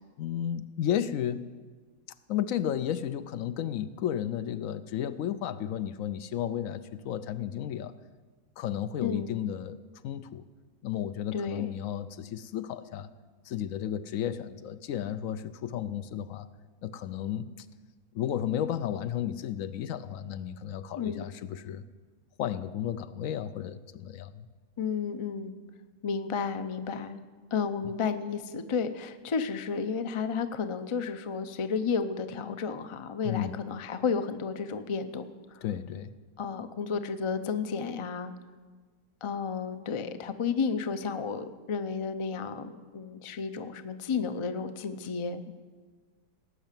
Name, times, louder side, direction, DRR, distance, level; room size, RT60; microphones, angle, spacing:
voice 1, 0.2-1.4 2.3-7.9 8.6-9.8 10.0-10.4 10.8-13.1 13.4-16.5 16.8-17.7 18.1-21.8 22.4-24.5 33.2-33.6 35.6-36.1 45.5-45.6, left 10 dB, 70° left, 13 dB, 0.9 m, -33 dB
voice 2, 9.0-9.3 11.3-11.7 21.0-21.3 24.8-25.5 26.0-27.2 27.5-35.2 35.5-35.6 36.4-38.3 39.2-45.4, left 5 dB, 55° left, 10 dB, 0.3 m, -32 dB
18.0 x 6.6 x 8.9 m, 1.4 s
omnidirectional pair, 1.6 m